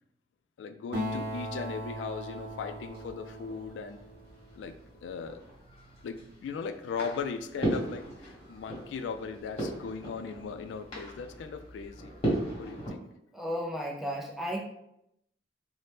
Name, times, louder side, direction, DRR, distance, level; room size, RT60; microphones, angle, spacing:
voice 1, 0.6-4.0 4.6-4.8 5.0-5.4 6.0-12.1 12.6-13.1, left 5 dB, 85° left, 10 dB, 0.3 m, -38 dB
Acoustic guitar, 0.9-4.7, equal, 65° right, 0.7 m, -38 dB
sound 1, 2.3-12.9, right 1 dB, 35° left, 1.2 m, -38 dB
voice 2, 13.3-14.6, equal, ahead, -1 dB, 0.4 m, -34 dB
4.1 x 2.1 x 3.3 m, 0.79 s
head